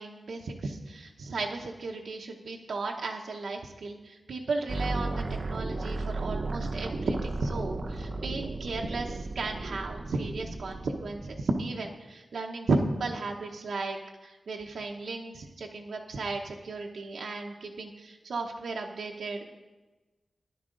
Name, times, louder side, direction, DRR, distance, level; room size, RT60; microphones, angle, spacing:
voice 1, 0.0-14.0 14.2-19.6, right 3 dB, 90° right, 0 dB, 0.9 m, -34 dB
sound 1, 4.7-11.5, right 2 dB, 45° right, 0.7 m, -35 dB
13.5 x 11.0 x 3.8 m, 1.2 s
wide cardioid pair, 105°, 0 cm